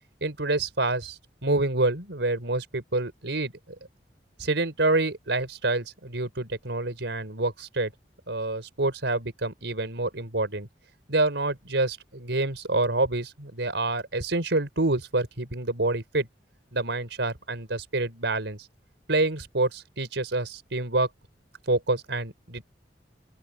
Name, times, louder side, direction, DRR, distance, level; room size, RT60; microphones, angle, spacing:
voice 1, 0.2-3.5 4.4-7.9 8.3-10.7 11.1-16.3 16.7-18.6 19.1-21.1 21.7-22.6, right 2 dB, 85° right, 4.0 m, -27 dB
open air
head